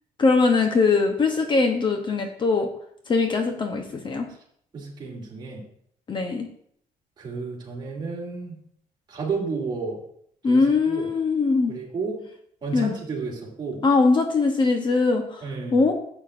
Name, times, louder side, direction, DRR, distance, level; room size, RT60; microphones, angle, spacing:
voice 1, 0.2-2.7 3.1-4.3 6.1-6.5 10.4-11.8 12.7-12.9 13.8-15.9, left 4 dB, 30° left, 4 dB, 0.8 m, -21 dB
voice 2, 4.7-5.6 7.2-8.6 9.1-10.0 10.5-11.1 11.7-12.2 12.6-13.8 15.4-15.8, right 4 dB, 30° right, -3 dB, 2.7 m, -32 dB
13.0 x 8.0 x 2.5 m, 0.66 s
cardioid pair, 165°, 15 cm